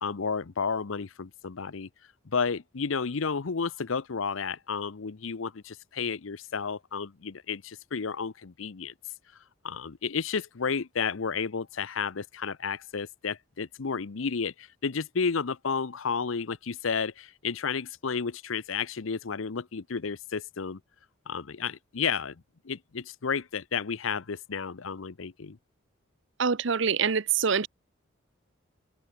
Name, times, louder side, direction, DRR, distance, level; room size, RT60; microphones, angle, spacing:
voice 1, 0.0-1.9 2.2-8.9 9.6-20.8 21.3-25.6, left 5 dB, 75° left, 0.7 m, -32 dB
voice 2, 26.4-27.7, right 6 dB, 60° right, 0.7 m, -25 dB
open air
head